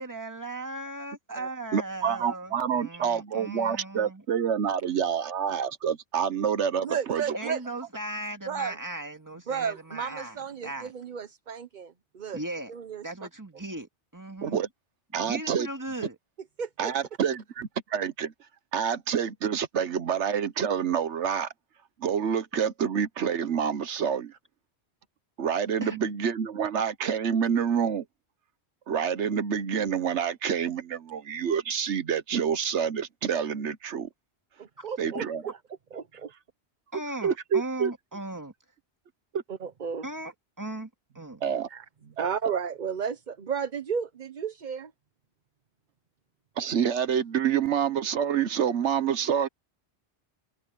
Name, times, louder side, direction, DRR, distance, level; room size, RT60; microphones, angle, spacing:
voice 1, 0.0-4.2 7.3-10.9 12.3-12.7 13.0-14.6 15.1-16.2 25.8-26.1 36.9-38.5 40.0-40.9 41.1-41.4, right 2 dB, 15° right, 2.1 m, -37 dB
voice 2, 1.7-7.2 14.4-14.7 15.1-15.7 16.8-18.3 18.7-21.5 22.0-24.3 25.4-28.0 28.9-34.1 35.0-35.4 37.2-37.9 39.3-39.4 41.4-41.7 42.2-42.3 46.6-49.5, right 7 dB, 85° right, 1.2 m, -27 dB
voice 3, 6.8-7.6 8.5-8.8 9.5-12.4 12.7-13.0 16.6-16.9 34.6-35.6 35.9-36.3 39.5-40.1 41.7-41.8 42.2-44.9, right 7 dB, 45° right, 0.9 m, -33 dB
omnidirectional pair, 1.2 m